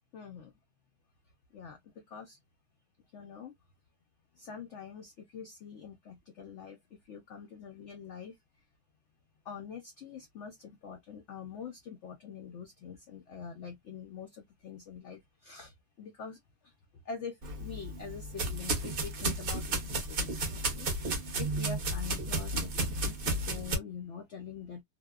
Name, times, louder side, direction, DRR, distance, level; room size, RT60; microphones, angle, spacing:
voice 1, 0.1-0.5 1.5-1.8 2.1-2.4 3.1-3.5 4.4-6.8 7.1-8.3 9.5-15.7 16.0-16.4 17.1-24.8, left 6 dB, 85° left, 0.6 m, -45 dB
sound 1, 17.4-23.8, right 2 dB, 50° right, 0.7 m, -33 dB
2.8 x 2.0 x 2.2 m
omnidirectional pair, 1.8 m